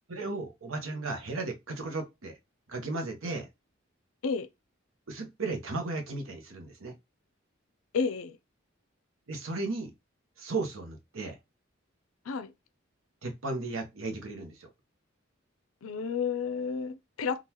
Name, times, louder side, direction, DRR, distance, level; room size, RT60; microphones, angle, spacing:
voice 1, 0.1-2.4 2.7-3.5 5.1-6.9 9.3-9.9 10.4-11.4 13.2-14.7, right 3 dB, 75° right, 0.9 m, -35 dB
voice 2, 7.9-8.4 12.3-12.5 15.8-17.4, left 5 dB, 85° left, 0.5 m, -31 dB
3.7 x 2.4 x 2.9 m
head